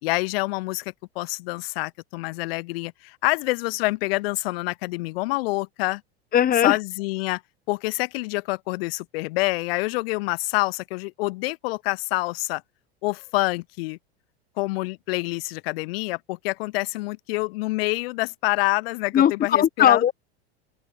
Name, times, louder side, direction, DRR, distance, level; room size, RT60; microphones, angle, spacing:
voice 1, 0.0-6.0 6.6-7.4 7.7-12.6 13.0-14.0 14.6-20.0, left 23 dB, 65° left, 3.7 m, -27 dB
voice 2, 6.3-6.8 19.1-20.1, left 10 dB, 30° left, 1.3 m, -18 dB
open air
hypercardioid pair, 95°, 32 cm